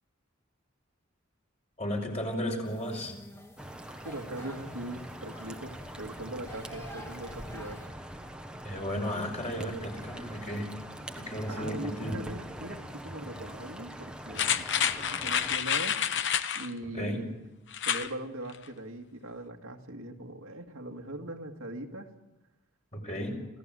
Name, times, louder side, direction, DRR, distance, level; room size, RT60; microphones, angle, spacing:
voice 1, 1.8-3.1 8.6-10.7 11.1-12.2 16.9-17.2 22.9-23.4, equal, 35° left, 2 dB, 5.5 m, -34 dB
sound 1, 2.6-7.9, equal, 15° left, 1.9 m, -49 dB
sound 2, 3.6-15.6, right 1 dB, 5° right, 1.3 m, -43 dB
voice 2, 4.0-7.8 11.5-16.0 16.5-17.2 17.8-22.1, right 1 dB, 85° right, 3 dB, 2.1 m, -41 dB
sound 3, 14.3-16.7 17.7-18.1 18.5-18.6, left 9 dB, 55° left, 1.0 m, -29 dB
27.0 x 16.5 x 7.8 m, 0.99 s
head